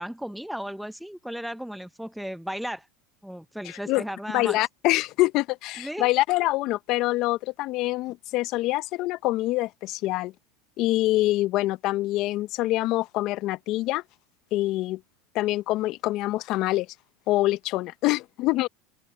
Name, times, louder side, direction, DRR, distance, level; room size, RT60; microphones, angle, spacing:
voice 1, 0.0-2.9 3.2-4.6 5.8-6.1, equal, ahead, 0.7 m, -35 dB
voice 2, 3.6-4.0 4.3-10.3 10.8-14.0 14.5-15.0 15.3-16.9 17.3-18.7, left 18 dB, 55° left, 0.8 m, -25 dB
open air
supercardioid pair, 105°, 0 cm